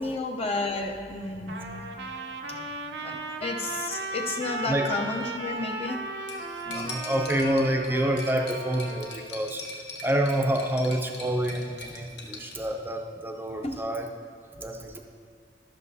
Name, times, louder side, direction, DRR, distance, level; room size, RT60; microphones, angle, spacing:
voice 1, 0.0-1.9 2.5-2.6 3.0-3.1 3.4-6.0 6.7-7.0 13.6-13.8, left 2 dB, 35° left, 2 dB, 0.6 m, -32 dB
Trumpet, 1.5-9.3, right 2 dB, 75° right, 0.6 m, -36 dB
voice 2, 4.4-4.9 6.7-9.6 10.0-14.1 14.6-15.0, right 1 dB, 10° right, 3 dB, 0.6 m, -28 dB
Cutlery silverware, 6.3-12.5, left 2 dB, 75° left, 1.1 m, -41 dB
13.0 x 6.4 x 2.7 m, 2.2 s
head